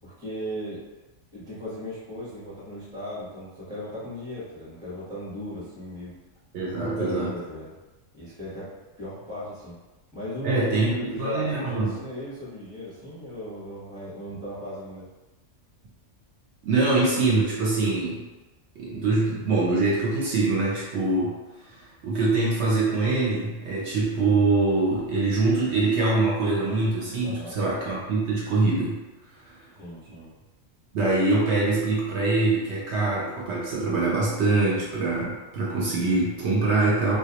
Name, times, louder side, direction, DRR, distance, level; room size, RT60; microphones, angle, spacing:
voice 1, 0.0-0.8 1.3-6.1 6.8-7.7 8.1-9.7 10.1-15.1 27.2-27.6 29.8-30.3, equal, 5° right, -9 dB, 0.7 m, -36 dB
voice 2, 6.5-7.3 10.4-11.9 16.6-18.2 18.8-21.4 22.0-29.0 30.9-37.2, right 3 dB, 70° right, -5 dB, 0.8 m, -24 dB
2.2 x 2.2 x 2.8 m, 1.1 s
omnidirectional pair, 1.3 m